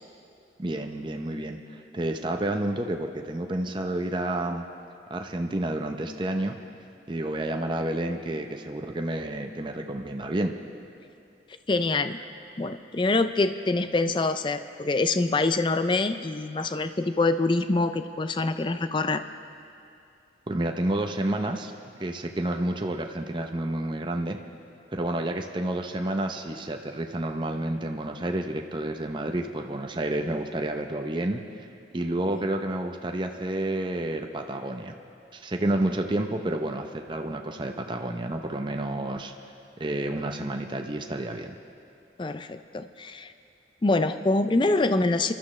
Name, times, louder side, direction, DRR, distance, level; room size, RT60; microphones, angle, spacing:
voice 1, 0.6-4.7 5.1-6.6 7.1-10.6 20.5-21.7 22.0-24.4 24.9-31.5 31.9-34.9 35.3-39.3 39.8-41.6, right 1 dB, 25° right, 4 dB, 0.6 m, -30 dB
voice 2, 11.7-12.2 12.6-19.2 32.3-32.4 42.2-43.3 43.8-45.3, left 2 dB, 25° left, 10 dB, 0.4 m, -25 dB
27.5 x 12.0 x 3.2 m, 2.5 s
head